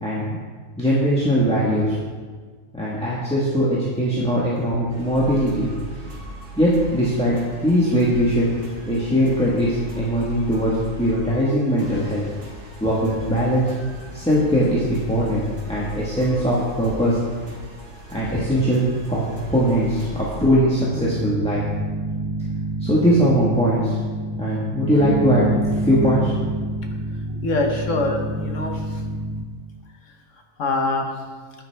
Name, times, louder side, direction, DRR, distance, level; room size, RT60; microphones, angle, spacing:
voice 1, 0.0-0.4 0.8-1.9 2.7-5.7 6.6-8.5 8.8-10.7 11.0-12.2 12.8-13.7 14.1-17.2 18.1-18.8 19.1-21.6 22.8-24.0 24.4-25.5 25.7-26.4, equal, 5° left, -7 dB, 1.4 m, -20 dB
sound 1, 4.9-20.5, right 1 dB, 85° right, 3.1 m, -38 dB
sound 2, 20.9-29.5, right 1 dB, 30° right, 0.4 m, -27 dB
voice 2, 27.4-29.0 30.6-31.1, left 2 dB, 60° left, 3 dB, 1.5 m, -24 dB
11.0 x 9.5 x 3.5 m, 1.5 s
omnidirectional pair, 1.6 m